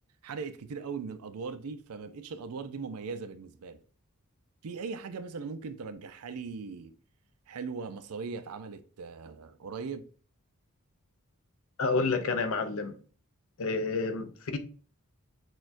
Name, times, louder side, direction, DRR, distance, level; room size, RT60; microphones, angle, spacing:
voice 1, 0.2-3.8 4.6-6.9 7.5-10.1, right 5 dB, 80° right, 0.5 m, -39 dB
voice 2, 11.8-12.9 13.6-14.6, left 3 dB, 65° left, 0.6 m, -29 dB
6.2 x 2.3 x 2.5 m
head